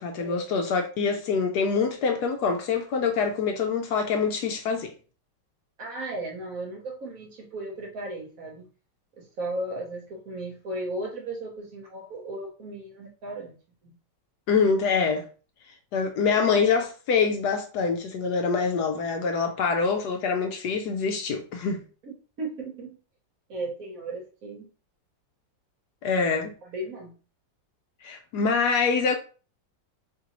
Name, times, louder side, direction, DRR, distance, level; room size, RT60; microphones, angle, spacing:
voice 1, 0.0-4.9 14.5-15.3 15.9-21.8 26.0-26.5 28.0-29.2, left 5 dB, 70° left, 1.0 m, -25 dB
voice 2, 5.8-8.7 9.2-13.6 13.8-14.0 22.0-23.0 23.5-24.7 26.1-26.2 26.6-27.2, right 2 dB, 55° right, 1.1 m, -36 dB
3.9 x 3.1 x 2.9 m
omnidirectional pair, 2.0 m